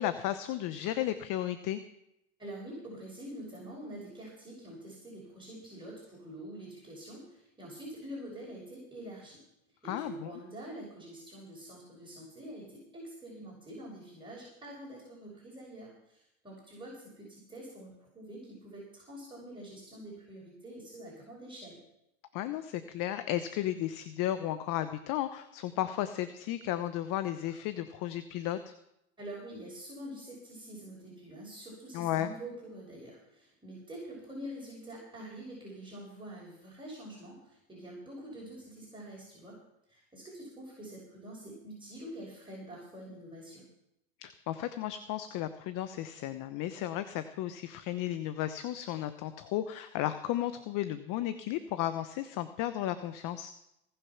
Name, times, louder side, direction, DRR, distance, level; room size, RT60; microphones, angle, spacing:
voice 1, 0.0-1.8 9.9-10.3 22.3-28.7 31.9-32.3 44.2-53.5, left 12 dB, 50° left, 11 dB, 1.0 m, -34 dB
voice 2, 2.4-9.4 9.8-21.8 29.2-39.6 39.9-43.7, right 1 dB, 10° right, -4 dB, 6.0 m, -46 dB
20.5 x 6.9 x 6.0 m, 0.84 s
hypercardioid pair, 100°, 41 cm